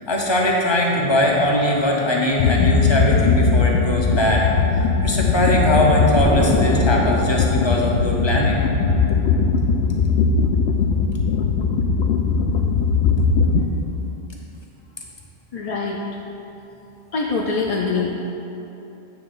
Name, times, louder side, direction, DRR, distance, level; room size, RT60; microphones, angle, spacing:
voice 1, 0.1-4.4 5.0-8.6, left 1 dB, 30° left, -2 dB, 0.8 m, -20 dB
sound 1, 2.4-13.6, left 5 dB, 85° left, 0.8 m, -19 dB
Explosion, 6.2-8.8, right 1 dB, 5° right, 0.8 m, -27 dB
voice 2, 15.5-16.0 17.1-18.3, left 4 dB, 55° left, -1 dB, 0.4 m, -24 dB
8.6 x 3.4 x 5.4 m, 3.0 s
omnidirectional pair, 1.1 m